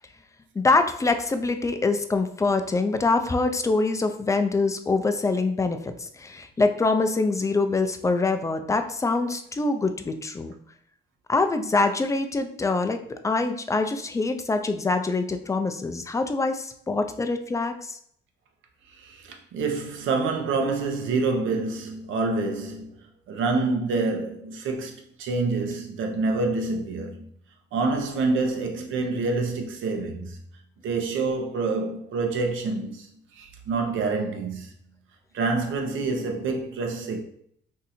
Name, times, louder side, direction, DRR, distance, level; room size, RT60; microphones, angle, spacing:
voice 1, 0.6-10.5 11.3-18.0, left 3 dB, 15° left, 0.4 m, -24 dB
voice 2, 19.0-22.9 23.3-27.3 27.7-30.4 30.8-33.1 33.3-34.7 35.3-37.2, right 3 dB, 80° right, 0.7 m, -27 dB
2.7 x 2.5 x 4.1 m
cardioid pair, 90°, 20 cm